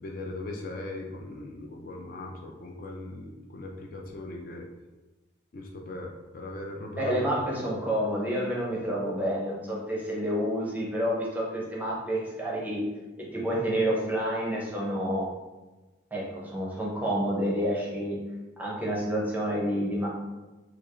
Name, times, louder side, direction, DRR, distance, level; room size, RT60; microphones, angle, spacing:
voice 1, 0.0-4.7 5.5-7.3, left 2 dB, 45° left, 0 dB, 0.4 m, -39 dB
voice 2, 7.0-12.8 13.2-15.3 16.1-18.2 18.6-20.1, equal, 10° right, -4 dB, 0.6 m, -29 dB
4.5 x 2.3 x 2.4 m, 1.1 s
head